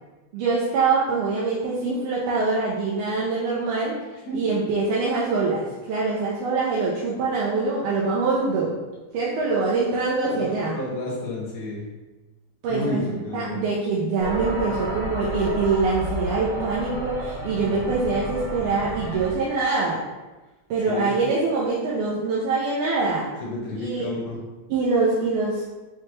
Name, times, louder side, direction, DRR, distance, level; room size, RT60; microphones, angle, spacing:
voice 1, 0.3-4.0 4.3-8.8 9.1-10.8 12.6-20.1 20.7-23.3 23.8-24.1 24.7-25.6, right 3 dB, 85° right, -6 dB, 1.5 m, -24 dB
voice 2, 10.2-11.9 12.7-13.6 20.9-21.1 23.4-24.4, left 1 dB, 70° left, -3 dB, 0.8 m, -31 dB
sound 1, 14.2-19.3, right 1 dB, 60° right, 1.8 m, -31 dB
5.8 x 2.2 x 3.1 m, 1.2 s
omnidirectional pair, 2.4 m